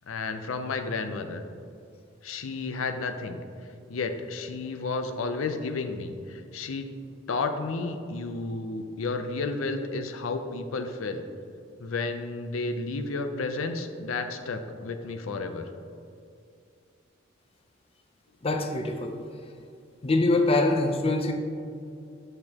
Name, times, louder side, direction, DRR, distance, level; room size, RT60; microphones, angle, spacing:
voice 1, 0.1-1.4 2.2-3.4 3.9-6.9 7.3-11.2 11.8-15.7, left 3 dB, 80° left, 6 dB, 0.5 m, -32 dB
voice 2, 18.4-19.2 20.0-21.3, left 2 dB, 30° left, 5 dB, 0.5 m, -24 dB
8.4 x 6.7 x 2.9 m, 2.5 s
head